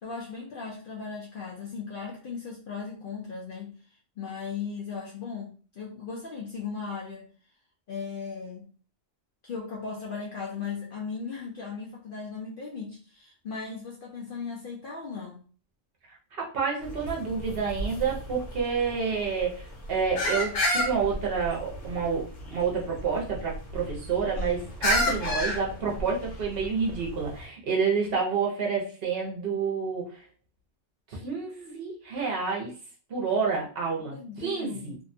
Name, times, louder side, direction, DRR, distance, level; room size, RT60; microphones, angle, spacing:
voice 1, 0.0-3.8 4.2-7.3 7.9-8.7 9.4-15.5 34.1-35.0, left 5 dB, 60° left, -2 dB, 0.6 m, -37 dB
voice 2, 16.3-30.2 31.1-32.7 33.1-34.9, right 5 dB, 55° right, -2 dB, 0.8 m, -29 dB
sound 1, 16.8-27.4, left 1 dB, 80° left, 1.1 m, -32 dB
2.6 x 2.1 x 2.5 m, 0.39 s
omnidirectional pair, 1.3 m